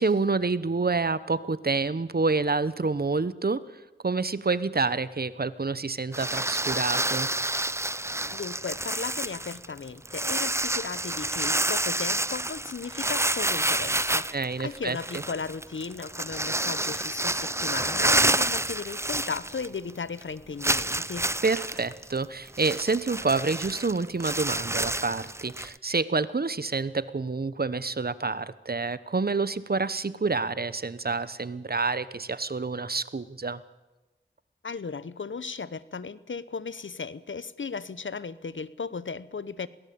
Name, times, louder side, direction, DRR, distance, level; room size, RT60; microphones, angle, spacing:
voice 1, 0.0-3.6 4.0-7.3 14.3-15.2 21.4-33.6, right 4 dB, 50° right, 16 dB, 1.0 m, -28 dB
sound 1, 6.1-19.9 20.2-20.3 20.6-25.8, right 1 dB, 15° right, 0.6 m, -28 dB
voice 2, 8.3-21.3 34.6-39.7, left 5 dB, 75° left, 17 dB, 0.9 m, -36 dB
22.0 x 17.5 x 8.6 m, 1.1 s
wide cardioid pair, 45°, 20 cm